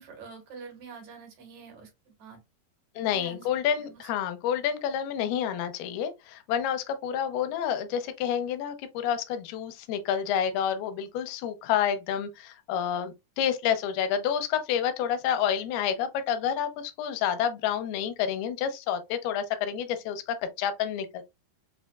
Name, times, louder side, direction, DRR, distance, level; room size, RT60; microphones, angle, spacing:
voice 1, 0.0-2.4 3.0-4.1, right 5 dB, 60° right, 2.3 m, -47 dB
voice 2, 3.0-21.2, left 9 dB, 85° left, 2.6 m, -29 dB
6.1 x 2.5 x 2.3 m
omnidirectional pair, 4.3 m